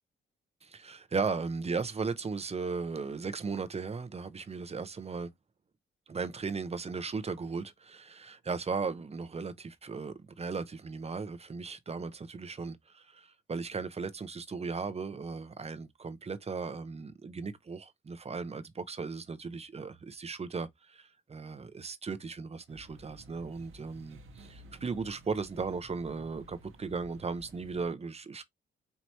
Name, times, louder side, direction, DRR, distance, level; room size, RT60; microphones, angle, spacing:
voice 1, 0.6-5.3 6.1-28.4, right 4 dB, 30° right, 0.7 m, -37 dB
sound 1, 22.7-27.9, right 1 dB, 75° right, 0.8 m, -53 dB
4.6 x 2.9 x 2.8 m
cardioid pair, 85°, 21 cm